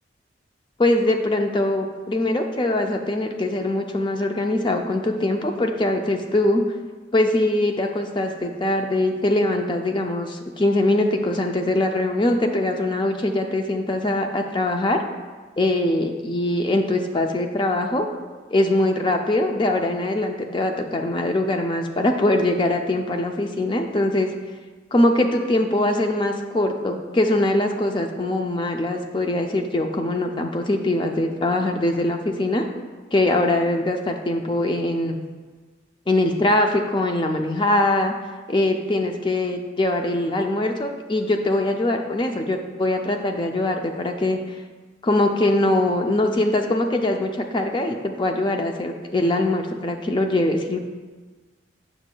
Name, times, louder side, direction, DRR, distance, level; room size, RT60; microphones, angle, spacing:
voice 1, 0.8-6.6 7.1-15.0 15.6-18.1 18.5-24.3 24.9-32.7 33.1-35.2 36.1-38.1 38.5-44.4 45.0-50.8, left 1 dB, 25° left, 4 dB, 0.4 m, -22 dB
7.9 x 5.9 x 2.2 m, 1.4 s
head